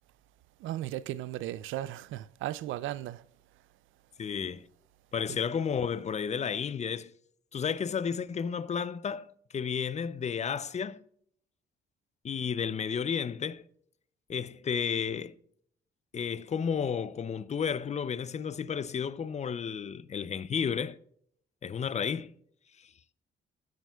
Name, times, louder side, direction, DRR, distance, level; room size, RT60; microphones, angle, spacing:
voice 1, 0.6-3.3 5.3-5.4, right 13 dB, 80° right, 0.4 m, -36 dB
voice 2, 4.2-4.7 5.1-7.1 7.5-11.0 12.2-13.6 14.3-15.3 16.1-21.0 21.6-22.3 22.8-22.9, left 7 dB, 35° left, 0.5 m, -32 dB
15.0 x 9.1 x 2.3 m
cardioid pair, 90°, 20 cm